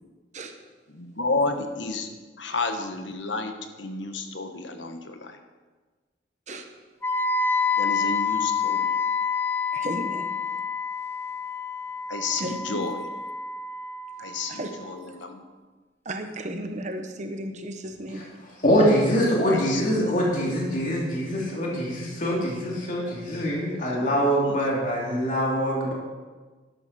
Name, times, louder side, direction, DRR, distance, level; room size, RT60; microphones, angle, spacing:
voice 1, 0.9-2.1 2.4-3.5 3.8-5.4 7.7-8.9 12.1-13.0 14.2-15.4 19.5-20.1 23.0-23.1 23.6-24.6, left 3 dB, 90° left, 6 dB, 1.3 m, -31 dB
Wind instrument woodwind instrument, 7.0-15.0, left 5 dB, 10° left, 0.4 m, -28 dB
voice 2, 9.7-10.3 12.4-12.8 14.5-14.7 15.0-15.2 16.0-18.2, right 1 dB, 40° right, 5 dB, 1.0 m, -34 dB
voice 3, 18.6-25.9, equal, 45° left, -4 dB, 2.9 m, -24 dB
12.0 x 11.5 x 4.3 m, 1.3 s
head